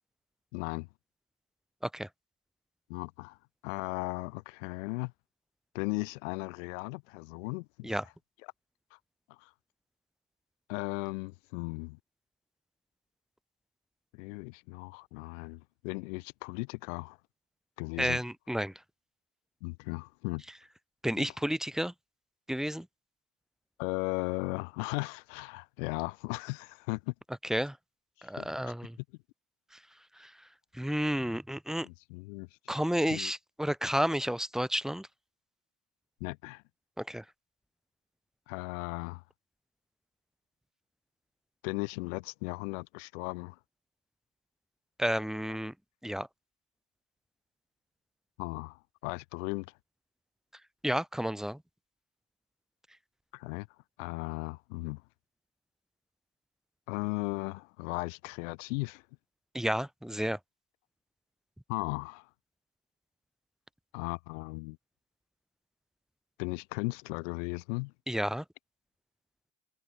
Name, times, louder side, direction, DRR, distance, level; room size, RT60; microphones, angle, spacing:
voice 1, 0.5-0.9 2.9-3.4 3.6-5.1 5.7-7.9 8.9-9.0 9.3-9.5 10.7-12.0 14.1-17.2 17.8-18.2 19.6-20.4 23.8-27.1 28.4-28.7 31.8-32.5 33.1-33.3 36.2-36.6 38.5-39.2 41.6-43.6 48.4-49.7 53.3-53.7 54.0-55.0 56.9-59.0 61.7-62.3 63.9-64.8 66.4-67.9, left 27 dB, 75° left, 7.8 m, -36 dB
voice 2, 18.0-18.7 21.0-21.9 22.5-22.9 27.5-27.8 28.2-29.0 30.2-30.3 30.7-31.9 32.7-35.1 37.0-37.2 45.0-45.7 46.0-46.3 50.8-51.6 59.5-60.4 68.1-68.4, equal, ahead, 5.7 m, -31 dB
supercardioid pair, 140°, 37 cm